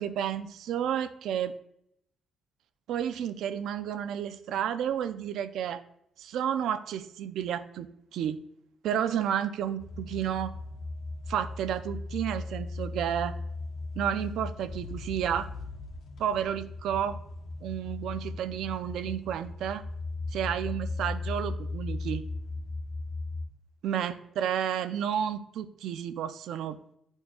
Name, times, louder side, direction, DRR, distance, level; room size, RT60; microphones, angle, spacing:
voice 1, 0.0-1.5 2.9-5.8 6.2-8.4 8.8-10.5 11.3-13.3 13.9-15.5 16.2-17.2 17.6-19.8 20.3-22.2 23.8-26.8, right 9 dB, 70° right, 10 dB, 0.4 m, -31 dB
sound 1, 9.8-23.5, left 3 dB, 55° left, 0.7 m, -37 dB
11.0 x 4.4 x 2.3 m, 0.75 s
cardioid pair, 165°, 0 cm